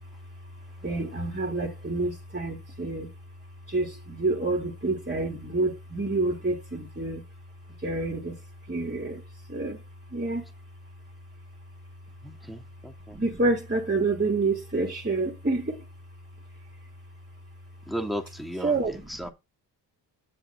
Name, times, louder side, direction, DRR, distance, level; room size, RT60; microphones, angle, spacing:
voice 1, 0.8-3.1 3.7-7.2 7.8-8.4 8.7-9.2 9.5-9.8 10.1-10.4 13.1-15.8 18.6-19.3, right 2 dB, 20° right, 3.6 m, -28 dB
voice 2, 12.2-13.2 17.9-19.3, equal, ahead, 2.5 m, -35 dB
8.1 x 7.6 x 3.8 m
hypercardioid pair, 50°, 49 cm